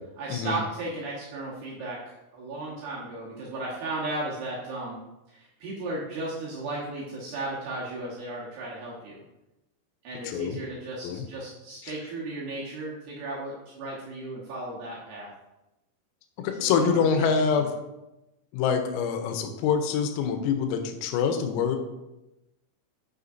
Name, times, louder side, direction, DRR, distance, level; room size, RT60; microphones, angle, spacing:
voice 1, 0.2-2.0 2.3-5.0 5.3-9.1 10.0-15.3 16.6-17.3 17.6-17.7, right 2 dB, 70° right, -6 dB, 2.5 m, -35 dB
voice 2, 10.3-10.6 11.0-11.3 16.4-17.7 18.5-21.8, left 6 dB, 90° left, 6 dB, 3.5 m, -25 dB
9.7 x 5.8 x 2.6 m, 0.97 s
omnidirectional pair, 5.9 m